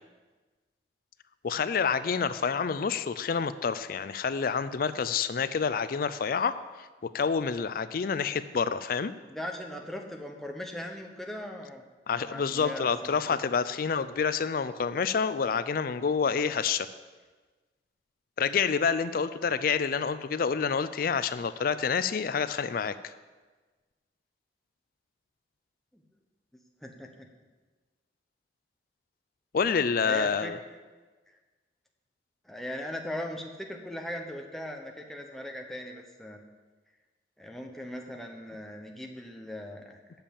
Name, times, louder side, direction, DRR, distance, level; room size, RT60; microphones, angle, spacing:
voice 1, 1.4-9.1 12.1-16.9 18.4-23.1 29.5-30.6, left 6 dB, 55° left, 14 dB, 0.4 m, -28 dB
voice 2, 9.3-11.8 12.2-13.4 26.8-27.1 29.9-30.5 32.4-36.4 37.4-40.2, left 1 dB, ahead, 1 dB, 1.0 m, -39 dB
8.0 x 7.1 x 8.5 m, 1.3 s
head